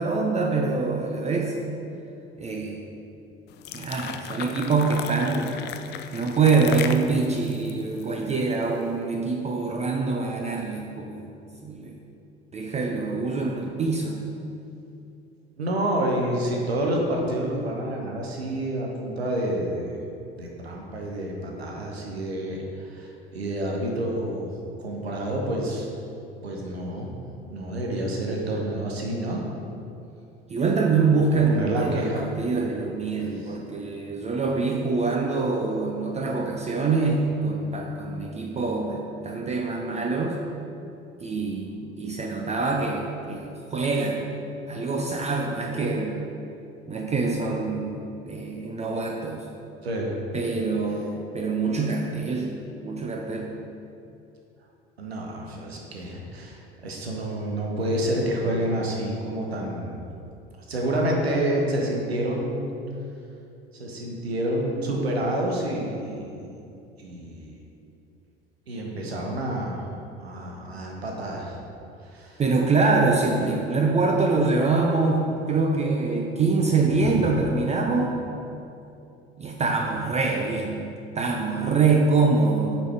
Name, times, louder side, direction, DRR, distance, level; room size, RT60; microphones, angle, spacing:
voice 1, 0.0-1.5 2.4-2.8 3.7-5.6 6.1-11.3 11.6-11.9 12.5-14.2 30.5-39.0 39.2-40.4 41.2-44.3 44.7-46.2 46.9-49.5 50.3-52.5 52.8-53.6 72.4-78.2 79.4-80.9 81.1-82.8, right 4 dB, 20° right, 1 dB, 0.6 m, -24 dB
sound 1, 3.5-8.7, left 8 dB, 35° left, 0.4 m, -36 dB
voice 2, 15.6-20.0 20.3-24.5 24.8-25.9 26.4-27.1 27.5-29.4 31.3-32.3 33.2-33.5 49.8-50.1 55.0-60.0 60.7-62.7 63.7-66.5 67.0-67.6 68.7-69.9 70.2-71.6 72.0-72.4 76.9-77.4, right 1 dB, 80° right, 0 dB, 0.9 m, -28 dB
8.1 x 5.3 x 3.4 m, 2.7 s
figure-of-eight pair, 60°, 31 cm